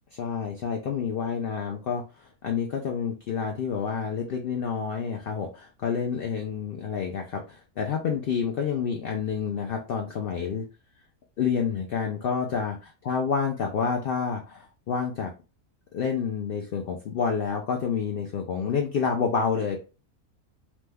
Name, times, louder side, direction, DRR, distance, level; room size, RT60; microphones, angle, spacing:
voice 1, 0.1-10.7 11.4-15.3 15.9-19.8, left 6 dB, 80° left, 2 dB, 0.5 m, -29 dB
3.0 x 2.2 x 3.3 m, 0.32 s
omnidirectional pair, 1.5 m